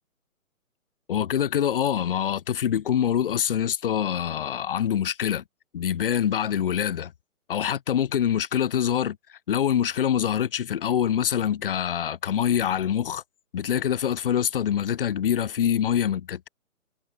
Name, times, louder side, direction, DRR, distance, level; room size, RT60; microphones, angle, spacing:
voice 1, 1.1-5.4 5.7-7.1 7.5-13.2 13.5-16.5, left 9 dB, 40° left, 0.7 m, -25 dB
figure-of-eight pair, 145°, 43 cm